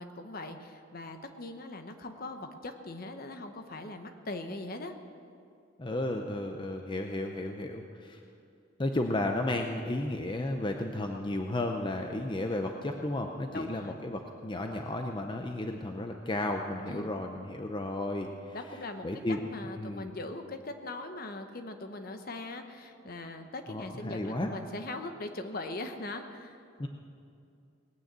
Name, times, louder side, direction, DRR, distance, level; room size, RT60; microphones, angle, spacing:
voice 1, 0.0-5.0 13.5-14.0 16.9-17.1 18.5-26.6, left 2 dB, 50° left, 7 dB, 1.0 m, -41 dB
voice 2, 5.8-8.2 8.8-18.6 19.0-19.4 19.8-20.1 23.7-24.5 26.8-26.9, left 1 dB, 25° left, 4 dB, 0.6 m, -33 dB
19.0 x 9.2 x 7.6 m, 2.5 s
head